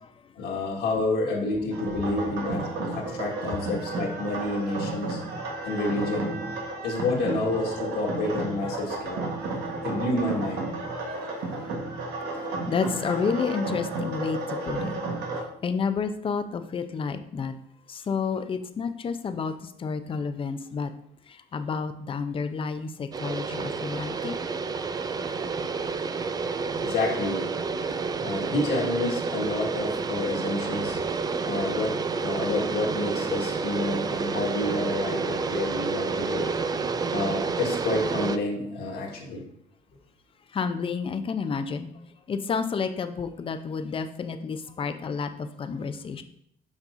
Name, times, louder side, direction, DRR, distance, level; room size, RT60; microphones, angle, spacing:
voice 1, 0.4-5.2 5.6-6.4 6.8-9.2 9.8-10.7 26.8-27.4 28.2-31.0 31.4-36.4 37.1-39.4, left 2 dB, 75° left, -1 dB, 1.8 m, -29 dB
sound 1, 1.7-15.4, right 2 dB, 80° right, 1.4 m, -33 dB
voice 2, 12.7-14.9 15.6-17.5 17.9-19.5 19.8-20.9 21.5-24.4 40.5-41.9 42.3-46.2, left 5 dB, 30° left, 9 dB, 0.5 m, -30 dB
sound 2, 23.1-38.4, right 4 dB, 25° right, 0.4 m, -29 dB
7.2 x 5.3 x 2.6 m, 0.71 s
cardioid pair, 110°, 17 cm